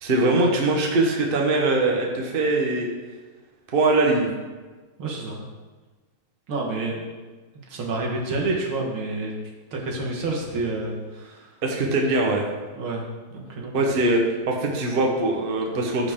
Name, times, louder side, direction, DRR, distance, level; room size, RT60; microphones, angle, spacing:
voice 1, 0.0-2.9 3.7-4.3 11.6-12.5 13.7-16.1, right 2 dB, 35° right, 0 dB, 1.0 m, -22 dB
voice 2, 5.0-5.4 6.5-7.1 7.7-9.3 9.7-11.6 12.7-13.0 13.3-13.7, right 2 dB, 80° right, -1 dB, 2.3 m, -29 dB
14.5 x 4.8 x 3.7 m, 1.3 s
omnidirectional pair, 2.2 m